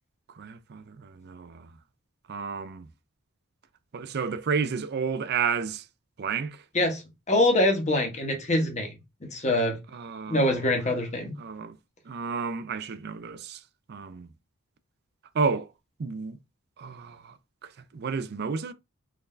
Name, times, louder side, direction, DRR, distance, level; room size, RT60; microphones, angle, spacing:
voice 1, 0.3-1.7 2.3-2.9 3.9-5.8 6.2-6.6 9.9-10.7 11.4-11.8 12.1-13.6 13.9-14.3 15.3-15.7 16.0-16.4 16.8-17.4 17.6-18.7, right 5 dB, 50° right, 0.4 m, -31 dB
voice 2, 6.7-8.9 9.3-9.8 10.3-11.3, left 1 dB, 30° left, 1.1 m, -24 dB
4.0 x 2.6 x 3.2 m
head